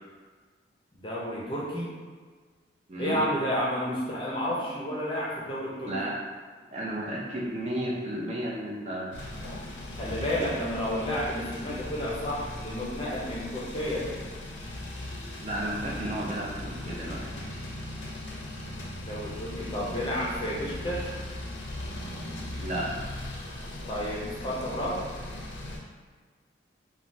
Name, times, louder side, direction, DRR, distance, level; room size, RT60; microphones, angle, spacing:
voice 1, 1.0-2.0 3.0-6.0 10.0-14.1 19.0-21.1 23.9-25.0, equal, 25° left, -5 dB, 0.5 m, -31 dB
voice 2, 2.9-3.3 5.9-6.1 6.7-9.3 15.4-17.2 22.6-22.9, right 1 dB, 35° right, -4 dB, 0.4 m, -33 dB
sound 1, 9.1-25.8, left 1 dB, 80° left, 0.5 m, -38 dB
3.1 x 2.2 x 2.6 m, 1.5 s
head